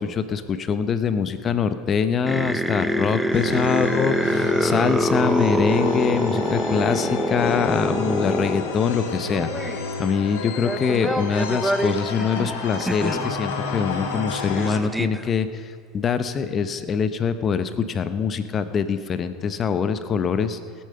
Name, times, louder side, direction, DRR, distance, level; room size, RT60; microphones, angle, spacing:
voice 1, 0.0-9.6 10.0-15.7 15.9-20.6, left 6 dB, 35° left, 11 dB, 0.9 m, -24 dB
sound 1, 2.2-8.7 9.2-9.8 10.5-13.3 13.8-13.9 14.1-14.2 14.6-15.2, equal, 5° right, 0.6 m, -25 dB
sound 2, 3.3-14.8, left 4 dB, 80° left, 1.8 m, -31 dB
18.0 x 8.6 x 5.8 m, 2.1 s
hypercardioid pair, 85°, 0 cm